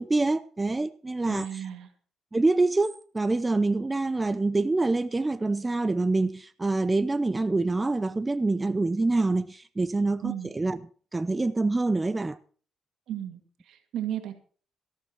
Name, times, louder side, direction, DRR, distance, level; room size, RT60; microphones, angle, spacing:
voice 1, 0.0-1.5 2.3-10.8 11.1-12.4, right 2 dB, 20° right, 0.6 m, -26 dB
voice 2, 1.3-1.9 10.2-10.5 13.1-14.3, right 11 dB, 80° right, 2.2 m, -34 dB
14.0 x 12.0 x 4.5 m
cardioid pair, 90°, 0 cm